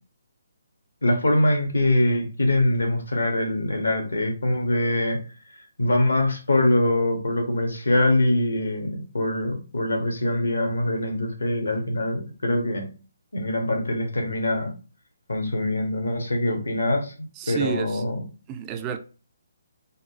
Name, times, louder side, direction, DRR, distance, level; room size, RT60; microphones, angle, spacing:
voice 1, 1.0-5.2 5.8-12.9 13.3-14.7 15.3-17.1 17.5-18.2, left 1 dB, 75° left, 1.1 m, -23 dB
voice 2, 17.4-18.0 18.5-19.0, right 9 dB, 20° right, 0.3 m, -30 dB
4.0 x 2.3 x 2.7 m
figure-of-eight pair, 140°, 0 cm